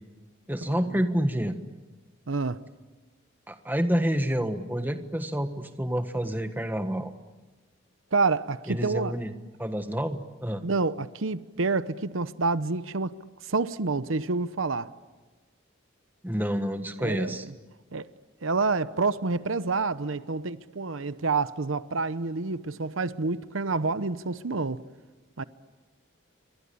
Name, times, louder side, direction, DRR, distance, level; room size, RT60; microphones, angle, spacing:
voice 1, 0.5-1.6 3.5-7.1 8.7-9.3 9.6-10.6 16.2-17.5, equal, 10° right, 1.4 m, -28 dB
voice 2, 2.3-2.6 8.1-9.1 10.6-13.1 13.5-14.9 17.0-17.3 17.9-18.0 18.4-24.8 25.4-25.5, right 3 dB, 80° right, 0.9 m, -28 dB
29.0 x 24.0 x 8.6 m
head